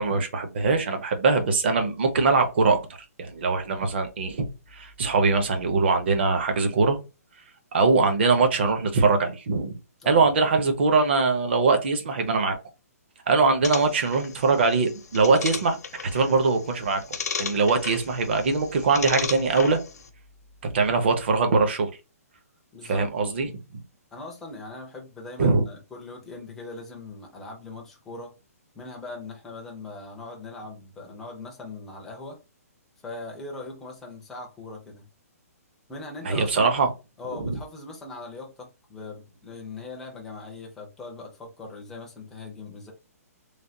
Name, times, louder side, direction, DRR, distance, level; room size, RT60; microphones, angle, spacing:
voice 1, 0.0-2.8 3.2-4.5 4.7-7.0 7.7-9.8 10.1-12.6 13.3-15.8 16.1-17.0 17.4-19.8 20.6-21.9 22.8-23.5 23.7-23.8 25.4-25.6 36.2-36.9 37.4-37.6, right 4 dB, 40° right, 0.6 m, -22 dB
sound 1, 13.6-20.1, left 6 dB, 80° left, 0.6 m, -36 dB
voice 2, 22.7-23.1 24.1-28.3 28.7-32.4 33.0-35.1 35.9-36.7 37.2-42.9, left 3 dB, 5° left, 0.4 m, -40 dB
3.3 x 2.2 x 2.6 m
hypercardioid pair, 175°, 9 cm